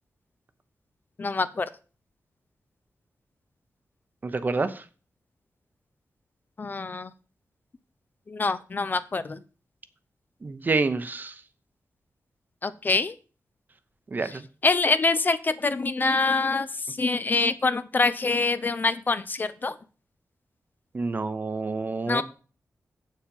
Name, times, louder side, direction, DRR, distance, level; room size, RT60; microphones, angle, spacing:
voice 1, 1.2-1.7 6.6-7.1 8.3-9.4 12.6-13.1 14.6-19.7 22.1-22.2, left 3 dB, 35° left, 0.5 m, -25 dB
voice 2, 4.2-4.8 10.4-11.3 14.1-14.4 20.9-22.2, right 3 dB, 35° right, 0.8 m, -28 dB
7.9 x 7.3 x 5.4 m
wide cardioid pair, 165°, 6 cm